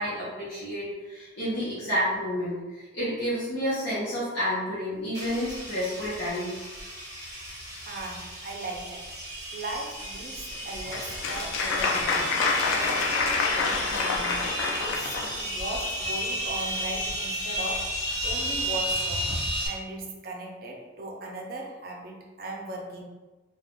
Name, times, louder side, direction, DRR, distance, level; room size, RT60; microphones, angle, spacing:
voice 1, 0.0-6.6, equal, 60° left, -12 dB, 0.9 m, -30 dB
sound 1, 5.1-19.7, equal, 20° right, 1.2 m, -33 dB
voice 2, 7.9-9.1 9.5-12.4 12.7-14.5 14.8-17.9 18.2-19.3 19.6-23.0, right 2 dB, 50° right, 0 dB, 0.5 m, -38 dB
Applause, 10.5-15.4, left 4 dB, 90° left, 0.4 m, -27 dB
2.4 x 2.3 x 3.6 m, 1.2 s
head